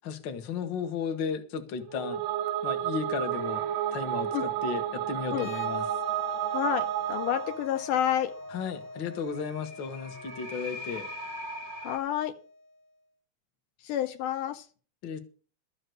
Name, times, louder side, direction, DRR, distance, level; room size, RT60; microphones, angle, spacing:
voice 1, 0.0-2.2 2.6-5.9 8.5-11.1 15.0-15.2, left 6 dB, 45° left, 1.6 m, -34 dB
sound 1, 1.9-7.6, right 12 dB, 75° right, 1.5 m, -31 dB
sound 2, 3.3-12.0, equal, 60° right, 0.9 m, -45 dB
sound 3, 5.3-12.8, left 2 dB, 25° left, 2.1 m, -42 dB
voice 2, 6.5-8.3 11.8-12.4 13.8-14.7, left 11 dB, 75° left, 2.3 m, -29 dB
13.5 x 7.9 x 6.5 m
omnidirectional pair, 3.8 m